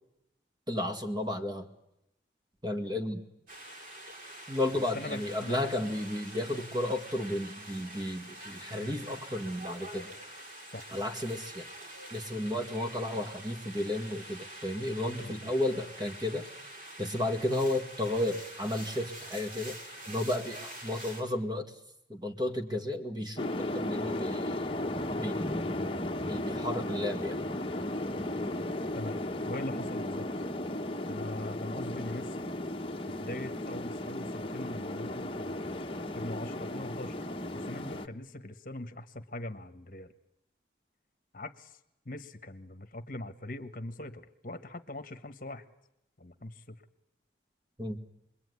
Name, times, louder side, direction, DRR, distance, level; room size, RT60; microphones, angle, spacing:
voice 1, 0.7-1.7 2.6-3.2 4.5-10.1 10.9-11.7 12.1-16.5 17.0-19.8 20.1-21.7 22.1-24.6 25.2-25.4 26.3-27.4 47.8-48.0, left 1 dB, 25° right, 5 dB, 2.0 m, -33 dB
sound 1, 3.5-21.2, right 1 dB, 50° right, 7.3 m, -46 dB
voice 2, 4.9-5.9 10.7-10.8 15.2-15.5 28.9-30.3 31.0-32.5 33.1-40.1 41.3-41.8 42.0-45.6 46.2-46.8, left 1 dB, 50° left, 9 dB, 1.4 m, -41 dB
sound 2, 23.4-38.1, left 1 dB, 30° left, 1.2 m, -35 dB
28.0 x 22.0 x 9.7 m, 0.83 s
head